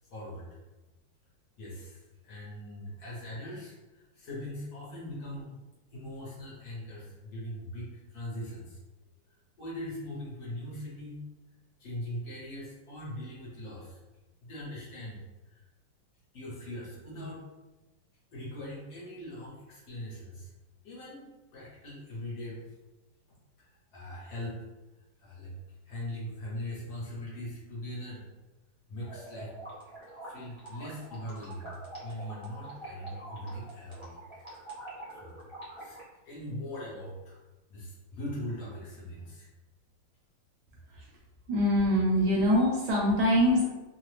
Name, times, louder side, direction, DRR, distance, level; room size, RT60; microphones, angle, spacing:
voice 1, 0.1-0.6 1.6-5.6 5.9-8.8 9.6-11.2 11.8-14.0 14.4-15.7 16.3-17.4 18.3-20.5 20.8-22.6 23.6-24.7 25.2-25.5 25.8-28.2 28.9-29.5 30.3-31.7 32.0-34.5 35.1-35.4 35.8-36.0 36.2-37.4 37.7-39.5, left 1 dB, 60° left, -6 dB, 1.2 m, -41 dB
sound 1, 29.0-36.0, right 1 dB, 35° right, 0.4 m, -45 dB
voice 2, 41.5-43.7, equal, 75° right, -3 dB, 1.0 m, -24 dB
3.1 x 2.0 x 3.1 m, 1.1 s
omnidirectional pair, 2.1 m